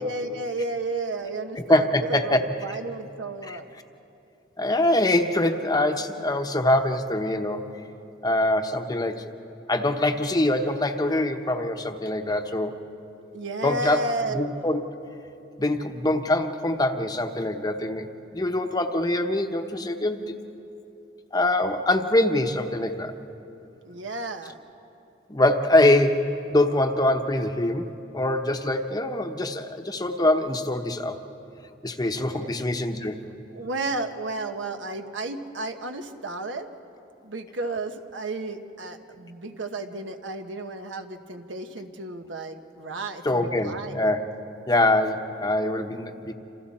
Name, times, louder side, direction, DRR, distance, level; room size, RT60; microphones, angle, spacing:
voice 1, 0.0-3.7 13.3-14.5 23.8-24.5 32.3-32.5 33.5-36.7 37.2-44.0, right 2 dB, 75° right, 6 dB, 1.3 m, -32 dB
voice 2, 1.7-2.4 3.5-3.6 4.6-7.7 8.2-9.3 9.7-12.8 13.6-14.0 14.3-14.8 15.6-18.1 18.3-20.4 21.3-23.1 25.3-31.2 31.8-33.2 43.2-44.2 44.7-46.3, left 1 dB, 20° left, 6 dB, 1.0 m, -24 dB
27.5 x 27.0 x 4.3 m, 2.8 s
head